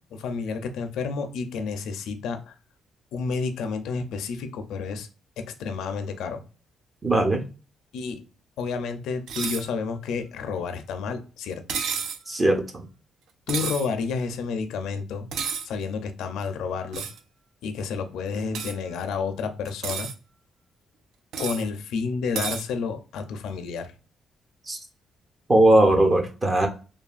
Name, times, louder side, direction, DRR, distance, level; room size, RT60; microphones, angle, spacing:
voice 1, 0.1-2.5 3.1-5.1 5.4-6.4 7.9-8.2 8.6-11.6 13.5-15.3 15.6-17.1 17.6-20.1 21.4-23.9, left 5 dB, 85° left, 8 dB, 0.4 m, -30 dB
voice 2, 7.0-7.4 12.3-12.9 24.7-24.8 25.5-26.7, right 1 dB, 25° right, 3 dB, 0.8 m, -19 dB
sound 1, 9.3-9.7 11.7-12.2 13.5-13.9 15.3-15.7 16.9-17.2 18.5-18.7 19.6-20.1 21.3-21.6 22.3-22.6, right 7 dB, 75° right, 0.4 m, -30 dB
3.1 x 2.2 x 2.4 m, 0.34 s
cardioid pair, 90°, 0 cm